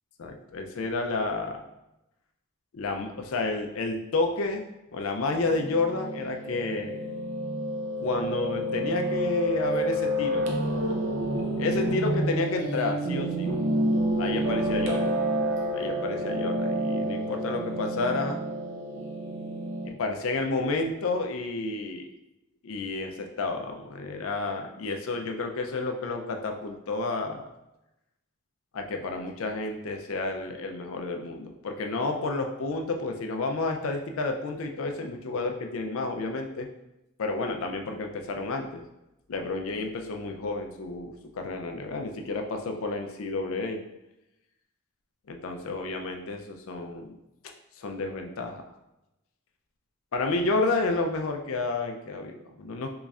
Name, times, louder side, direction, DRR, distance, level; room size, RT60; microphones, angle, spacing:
voice 1, 0.2-1.6 2.7-4.6 4.9-7.1 8.0-10.5 11.6-13.5 14.2-15.2 15.7-18.4 19.8-22.1 22.6-27.4 28.7-36.7 37.2-38.8 39.3-43.8 45.3-47.2 47.8-48.6 50.1-53.0, left 3 dB, 75° left, 4 dB, 0.5 m, -30 dB
Piano, 5.4-19.9, right 1 dB, 65° right, 0.6 m, -29 dB
3.9 x 3.1 x 2.4 m, 0.91 s
head